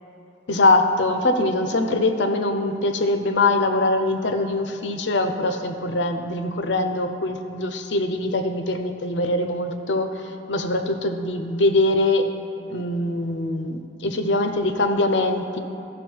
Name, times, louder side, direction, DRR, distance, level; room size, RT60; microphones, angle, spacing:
voice 1, 0.5-10.1 10.5-12.3 12.7-15.6, left 2 dB, 85° left, 7 dB, 0.7 m, -22 dB
13.0 x 6.3 x 4.6 m, 2.8 s
head